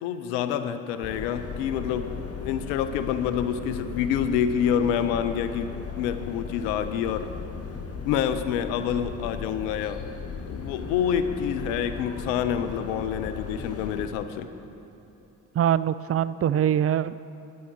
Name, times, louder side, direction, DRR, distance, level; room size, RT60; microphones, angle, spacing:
voice 1, 0.0-7.3 8.1-10.0 10.5-14.5, left 8 dB, 90° left, 10 dB, 0.6 m, -27 dB
sound 1, 1.0-14.1, left 5 dB, 40° left, 1.5 m, -37 dB
voice 2, 15.6-17.4, right 10 dB, 40° right, 17 dB, 0.5 m, -24 dB
12.5 x 9.8 x 6.0 m, 3.0 s
hypercardioid pair, 45°, 37 cm